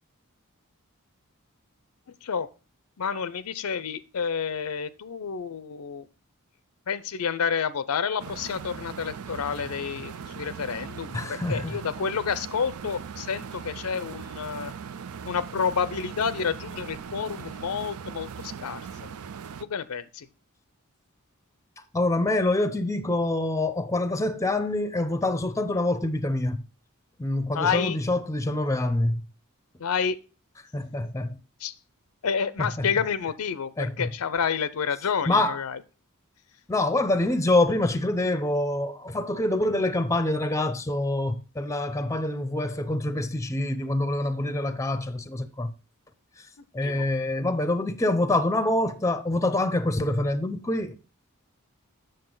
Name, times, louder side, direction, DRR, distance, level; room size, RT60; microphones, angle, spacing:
voice 1, 3.0-6.1 6.9-14.7 15.2-18.8 19.6-20.3 27.5-28.0 29.8-30.2 31.6-31.7 32.2-35.8 46.8-47.1, left 6 dB, 80° left, 0.6 m, -29 dB
sound 1, 8.2-19.6, right 6 dB, 80° right, 0.5 m, -39 dB
voice 2, 11.1-11.8 21.9-26.6 27.2-29.3 30.7-31.4 32.6-32.9 33.8-34.1 35.3-35.6 36.7-45.7 46.4-46.5 46.7-51.0, left 2 dB, 15° left, 0.6 m, -26 dB
7.7 x 6.5 x 3.8 m
head